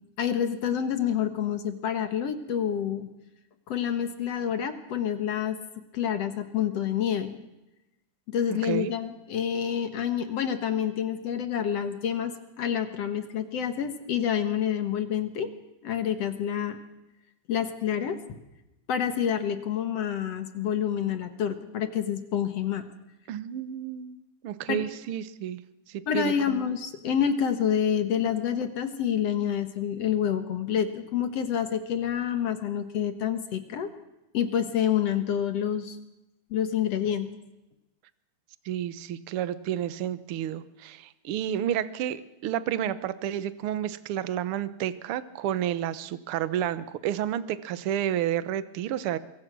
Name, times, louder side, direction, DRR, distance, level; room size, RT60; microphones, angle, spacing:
voice 1, 0.2-3.1 3.7-7.3 8.3-15.5 15.8-16.8 17.5-18.4 18.9-22.8 24.7-24.8 26.1-33.9 34.3-36.0 36.5-37.3, left 9 dB, 60° left, 9 dB, 2.2 m, -28 dB
voice 2, 8.5-8.9 23.3-24.2 24.4-25.6 25.9-26.6 38.6-49.2, right 11 dB, 65° right, 14 dB, 1.4 m, -30 dB
24.5 x 23.0 x 6.2 m, 0.95 s
omnidirectional pair, 3.7 m